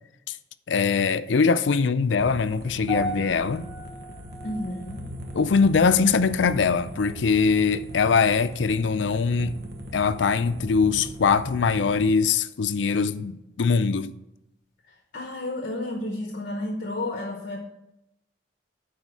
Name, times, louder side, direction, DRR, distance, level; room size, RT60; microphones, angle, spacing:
voice 1, 0.7-3.7 5.3-9.5 9.9-14.1, left 5 dB, 85° left, 0.5 m, -22 dB
sound 1, 2.2-12.1, equal, 60° right, 1.1 m, -39 dB
sound 2, 2.9-7.3 7.5-7.9 8.6-8.7, equal, ahead, 3.4 m, -38 dB
voice 2, 4.4-5.0 14.9-17.6, left 1 dB, 55° left, 1.0 m, -32 dB
9.6 x 4.2 x 6.2 m
head